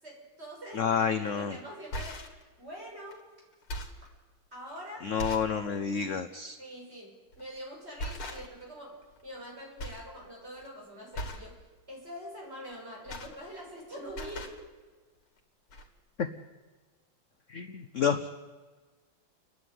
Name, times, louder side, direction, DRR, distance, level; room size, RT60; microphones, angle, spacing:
voice 1, 0.0-2.2 2.6-3.3 4.5-5.1 6.6-14.5, equal, 30° right, -3 dB, 6.9 m, -44 dB
voice 2, 0.7-1.6 5.0-6.6 16.2-16.3 17.5-18.3, left 7 dB, 60° left, 10 dB, 0.8 m, -29 dB
sound 1, 1.0-1.2 1.7-2.4 3.1-3.2 3.5-4.1 4.7-4.8 5.2-5.6 6.0-6.1 7.3-7.6 8.0-8.7 9.0-9.5 9.8-10.1 10.4-10.7 11.1-11.5 12.7-13.8 14.1-14.6 15.4-15.5 15.7-15.9, equal, 85° left, 2.9 m, -39 dB
29.5 x 11.0 x 9.6 m, 1.3 s
omnidirectional pair, 2.3 m